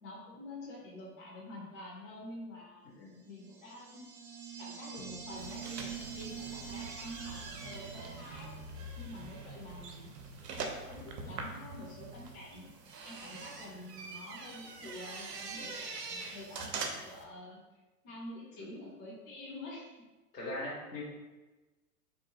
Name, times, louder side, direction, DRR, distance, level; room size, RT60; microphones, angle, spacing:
voice 1, 0.0-2.9 3.2-4.2 4.6-8.5 8.9-10.1 10.5-12.7 13.0-19.9, left 1 dB, 55° left, -4 dB, 0.9 m, -48 dB
voice 2, 2.8-3.1 15.5-15.7 18.5-18.7 20.3-21.0, left 2 dB, 80° left, -5 dB, 1.0 m, -41 dB
sound 1, 3.3-8.7, right 7 dB, 20° right, 0.4 m, -45 dB
sound 2, 5.0-12.4, right 3 dB, 40° right, 0.8 m, -52 dB
sound 3, 5.4-17.2, right 3 dB, 80° right, 0.6 m, -44 dB
2.6 x 2.1 x 2.9 m, 1.2 s
figure-of-eight pair, 105°, 48 cm